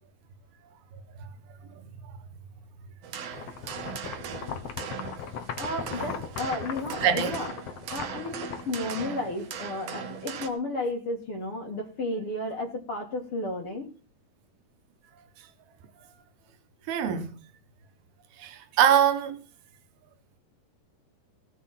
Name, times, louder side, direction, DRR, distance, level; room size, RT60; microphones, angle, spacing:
sound 1, 3.0-10.5, right 7 dB, 65° right, 1.7 m, -39 dB
sound 2, 3.3-9.4, left 7 dB, 60° left, 1.7 m, -38 dB
voice 1, 5.6-7.5 7.9-13.9, left 2 dB, 45° left, 2.4 m, -33 dB
voice 2, 7.0-7.3 16.9-17.4 18.4-19.4, right 9 dB, 85° right, 3.2 m, -23 dB
17.5 x 7.3 x 6.0 m
omnidirectional pair, 4.3 m